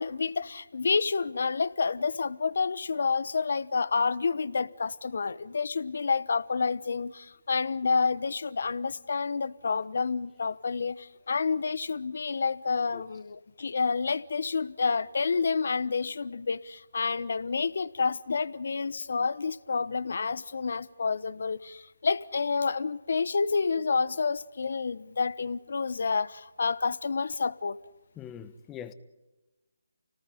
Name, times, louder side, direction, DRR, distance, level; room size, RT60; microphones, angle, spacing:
voice 1, 0.0-27.8, left 4 dB, 60° left, 1.1 m, -29 dB
voice 2, 28.2-28.9, left 9 dB, 10° left, 1.1 m, -42 dB
29.0 x 18.5 x 9.8 m
figure-of-eight pair, 155°, 0 cm